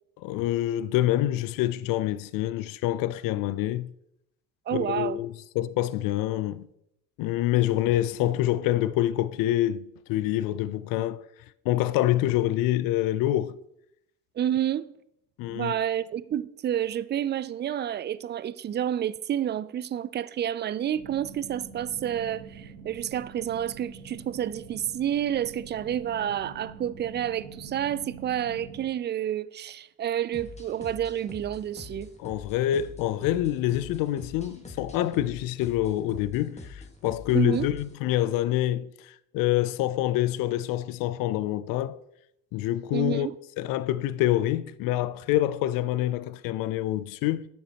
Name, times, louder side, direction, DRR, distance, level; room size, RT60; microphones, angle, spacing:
voice 1, 0.2-3.9 4.7-6.7 7.2-11.2 11.6-13.5 15.4-15.7 32.2-42.0 42.5-43.3 43.6-47.5, left 14 dB, 65° left, 0.5 m, -26 dB
voice 2, 4.7-5.2 14.4-14.9 15.5-32.1 37.3-37.7 42.9-43.3, right 10 dB, 30° right, 0.4 m, -29 dB
sound 1, 20.9-28.9, right 5 dB, 90° right, 1.3 m, -45 dB
sound 2, 30.3-38.0, left 3 dB, 20° left, 1.6 m, -45 dB
10.0 x 7.1 x 3.0 m
supercardioid pair, 75°, 37 cm